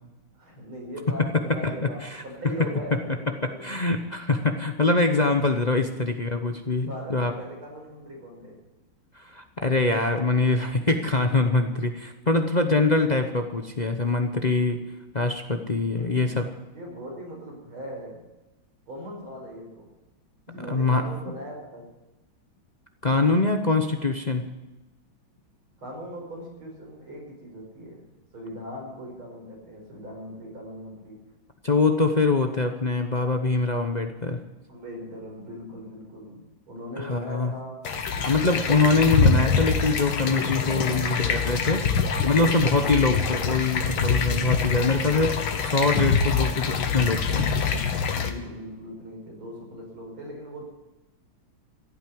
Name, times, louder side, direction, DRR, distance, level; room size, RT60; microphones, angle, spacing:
voice 1, 0.4-3.9 6.9-8.6 15.8-16.4 16.7-18.2 18.9-19.9 20.5-21.9 25.8-31.2 34.7-37.8 40.8-41.1 42.5-43.2 48.2-50.7, equal, 85° right, -1 dB, 5.8 m, -40 dB
voice 2, 1.6-2.2 3.3-7.3 9.2-14.8 15.1-16.5 20.7-21.0 23.0-24.5 31.6-34.4 37.0-37.5 38.2-41.8 42.2-47.4, left 3 dB, 40° left, 5 dB, 0.6 m, -24 dB
sound 1, 37.9-48.3, left 5 dB, 80° left, 2.1 m, -25 dB
15.5 x 9.1 x 9.4 m, 1.0 s
omnidirectional pair, 2.2 m